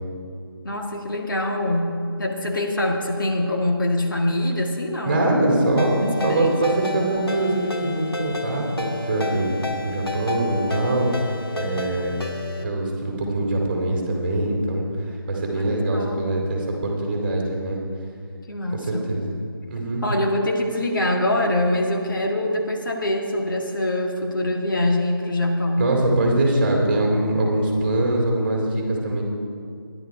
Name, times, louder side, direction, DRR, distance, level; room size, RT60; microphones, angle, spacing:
voice 1, 0.6-5.3 6.2-6.5 8.7-8.8 15.5-16.2 18.5-19.1 20.0-25.9, left 1 dB, 60° left, 1 dB, 1.8 m, -24 dB
voice 2, 5.0-11.1 11.5-12.2 12.6-17.8 18.7-19.3 19.7-20.0 25.8-29.2, right 1 dB, 25° right, 0 dB, 2.6 m, -23 dB
Ringtone, 5.8-12.6, left 3 dB, 75° left, 1.8 m, -32 dB
14.0 x 11.0 x 4.8 m, 2.4 s
figure-of-eight pair, 165°, 13 cm